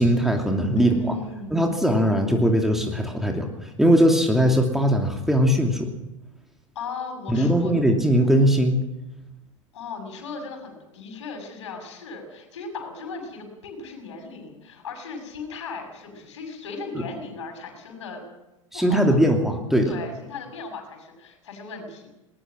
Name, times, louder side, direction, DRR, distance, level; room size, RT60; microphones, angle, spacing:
voice 1, 0.0-1.2 1.5-5.9 7.3-8.8 18.7-19.9, equal, ahead, 2 dB, 2.8 m, -20 dB
voice 2, 0.8-1.7 6.8-7.7 8.2-8.3 9.7-18.2 18.7-19.2 19.8-22.1, left 4 dB, 65° left, 4 dB, 6.8 m, -37 dB
21.0 x 20.0 x 6.3 m, 0.95 s
figure-of-eight pair, 90°, 16 cm